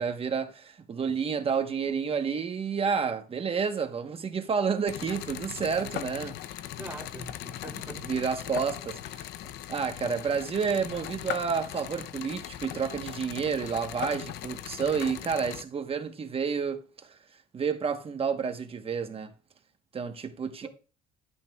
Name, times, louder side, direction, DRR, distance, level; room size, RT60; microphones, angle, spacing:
voice 1, 0.0-6.4 7.7-9.3 9.7-17.2 17.5-19.3 19.9-20.7, right 6 dB, 35° right, 1.0 m, -30 dB
sound 1, 4.9-15.6, left 11 dB, 75° left, 0.6 m, -39 dB
voice 2, 6.8-8.0 20.6-20.7, right 2 dB, 10° right, 2.1 m, -43 dB
14.0 x 8.4 x 2.3 m
cardioid pair, 110°, 17 cm